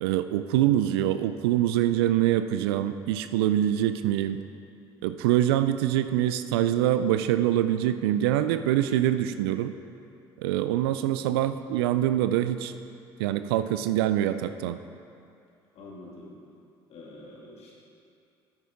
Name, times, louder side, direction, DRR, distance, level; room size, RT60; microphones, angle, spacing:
voice 1, 0.0-4.4 5.0-9.7 10.4-12.7 13.2-14.8, right 12 dB, 70° right, 11 dB, 0.4 m, -24 dB
voice 2, 15.7-16.3 16.9-17.7, left 2 dB, 50° left, -4 dB, 2.4 m, -45 dB
9.6 x 9.2 x 3.6 m, 2.5 s
figure-of-eight pair, 55°, 13 cm